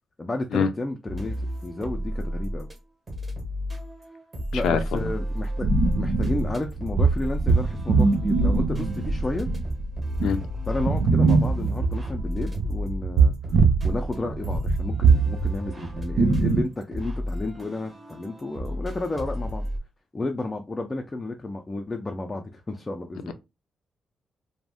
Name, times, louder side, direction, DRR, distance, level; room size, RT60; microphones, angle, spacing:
voice 1, 0.2-2.7 4.5-5.7 6.0-9.5 10.7-13.3 13.8-19.6 20.1-23.3, left 2 dB, 20° left, 0.3 m, -32 dB
sound 1, 1.1-2.8 3.1-19.8, equal, 20° right, 0.6 m, -32 dB
voice 2, 4.5-5.1 10.2-10.4, left 6 dB, 90° left, 0.4 m, -24 dB
sound 2, 5.6-13.9 14.2-16.6, right 4 dB, 75° right, 0.6 m, -22 dB
2.5 x 2.1 x 3.3 m
cardioid pair, 135°, 0 cm